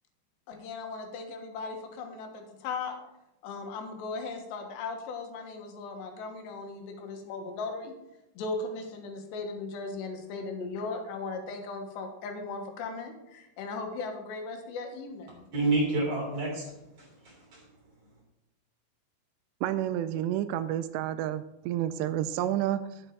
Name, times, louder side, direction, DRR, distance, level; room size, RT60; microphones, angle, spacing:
voice 1, 0.5-3.0 3.4-7.9 8.4-15.5, left 3 dB, 80° left, 3 dB, 3.5 m, -37 dB
voice 2, 15.5-17.6, right 2 dB, 35° right, -2 dB, 3.9 m, -29 dB
voice 3, 19.6-23.0, right 11 dB, 85° right, 12 dB, 2.7 m, -30 dB
9.2 x 8.8 x 4.6 m, 0.91 s
omnidirectional pair, 5.0 m